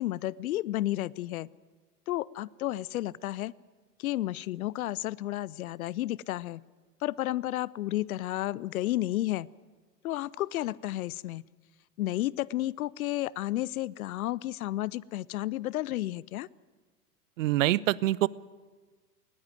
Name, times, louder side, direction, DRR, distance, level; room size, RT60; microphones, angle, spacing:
voice 1, 0.0-1.5 2.1-3.5 4.0-6.6 7.0-9.5 10.0-11.4 12.0-16.5, left 15 dB, 60° left, 24 dB, 0.6 m, -32 dB
voice 2, 17.4-18.3, right 16 dB, 55° right, 23 dB, 0.6 m, -25 dB
19.5 x 16.5 x 9.3 m, 1.4 s
figure-of-eight pair, 95°, 49 cm